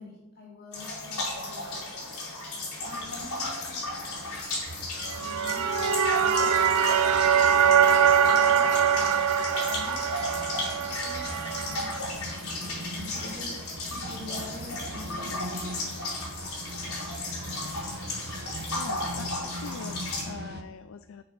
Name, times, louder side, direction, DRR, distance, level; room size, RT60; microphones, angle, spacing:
voice 1, 0.0-2.4 2.7-3.8 5.1-10.0 10.3-12.0 12.3-15.4, left 3 dB, 45° left, -3 dB, 3.3 m, -47 dB
sound 1, 0.7-20.2, left 2 dB, 85° left, 4.1 m, -35 dB
sound 2, 2.8-20.6, right 1 dB, 50° right, 0.9 m, -41 dB
sound 3, 5.0-12.0, right 8 dB, 75° right, 0.5 m, -23 dB
voice 2, 18.7-21.2, left 6 dB, 60° left, 13 dB, 0.4 m, -42 dB
8.9 x 6.7 x 6.0 m, 1.0 s
head